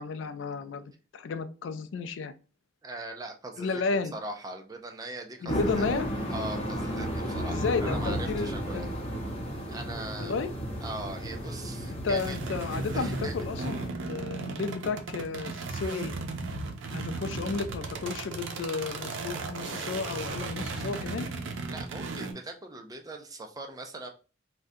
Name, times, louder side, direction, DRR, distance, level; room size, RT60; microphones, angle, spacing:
voice 1, 0.0-2.3 3.6-4.1 5.4-6.1 7.5-8.9 10.2-10.5 12.0-16.1 16.9-21.3, left 4 dB, 75° left, 11 dB, 0.3 m, -33 dB
voice 2, 2.8-3.8 4.1-5.9 6.3-8.9 9.7-10.3 10.8-12.4 12.9-13.3 13.6-13.8 21.7-24.1, right 2 dB, 20° right, 4 dB, 0.4 m, -40 dB
sound 1, 5.5-13.9, equal, 35° left, 0.8 m, -33 dB
sound 2, 12.2-22.3, right 3 dB, 90° right, 0.5 m, -36 dB
3.6 x 2.2 x 2.6 m, 0.35 s
head